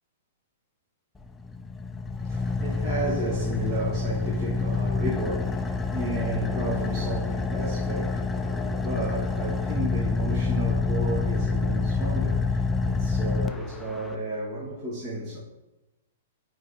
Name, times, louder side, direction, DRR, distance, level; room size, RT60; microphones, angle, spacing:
Car / Idling, 1.2-14.1, left 4 dB, 10° left, 0.3 m, -27 dB
voice 1, 2.2-15.4, right 1 dB, 35° right, 1.6 m, -33 dB
8.3 x 4.7 x 2.8 m
hypercardioid pair, 145°, 0 cm